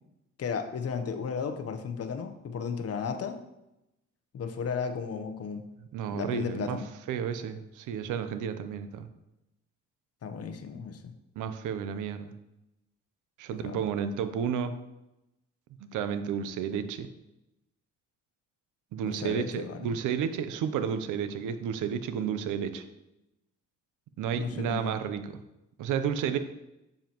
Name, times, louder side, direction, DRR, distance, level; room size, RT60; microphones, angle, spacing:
voice 1, 0.4-3.4 4.3-5.6 6.1-6.9 10.2-11.1 13.6-13.8 19.0-19.9 24.4-24.9, left 6 dB, 55° left, 8 dB, 0.9 m, -34 dB
voice 2, 5.9-6.8 7.1-9.1 11.4-12.3 13.4-14.7 15.9-17.1 18.9-22.8 24.2-25.4 25.8-26.4, right 8 dB, 85° right, 10 dB, 0.7 m, -31 dB
7.3 x 7.2 x 3.0 m, 0.90 s
cardioid pair, 90°, 30 cm